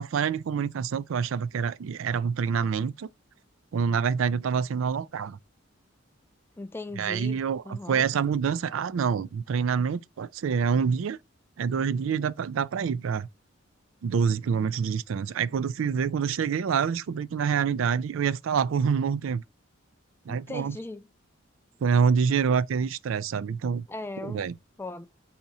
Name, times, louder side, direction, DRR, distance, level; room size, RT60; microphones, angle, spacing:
voice 1, 0.0-3.1 3.7-5.4 7.0-11.2 11.6-13.3 14.0-19.4 20.3-20.8 21.8-23.9 24.2-24.5, right 6 dB, 75° right, 0.4 m, -26 dB
voice 2, 6.6-7.4 7.6-8.1 11.7-12.0 20.3-21.1 23.9-24.5 24.8-25.1, left 2 dB, 10° left, 0.3 m, -38 dB
4.7 x 2.8 x 4.0 m
head